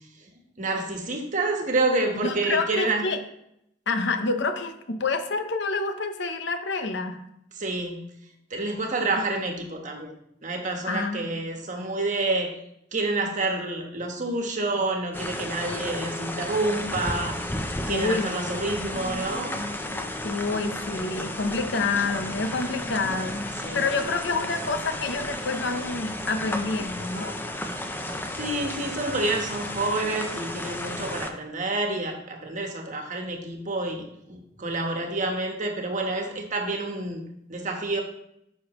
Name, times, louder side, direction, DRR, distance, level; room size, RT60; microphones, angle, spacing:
voice 1, 0.6-3.1 7.5-8.0 8.5-10.1 10.4-12.5 12.9-19.6 23.6-23.9 28.4-37.2 37.5-38.0, right 2 dB, 40° right, 3 dB, 1.3 m, -28 dB
voice 2, 2.2-3.2 3.9-7.2 10.9-11.3 11.8-11.9 17.9-18.3 20.2-27.3, left 3 dB, 65° left, 7 dB, 0.8 m, -28 dB
sound 1, 15.1-31.3, left 1 dB, 10° left, 0.6 m, -33 dB
sound 2, 18.7-27.5, equal, 40° left, 1.0 m, -43 dB
9.9 x 6.3 x 3.1 m, 0.76 s
head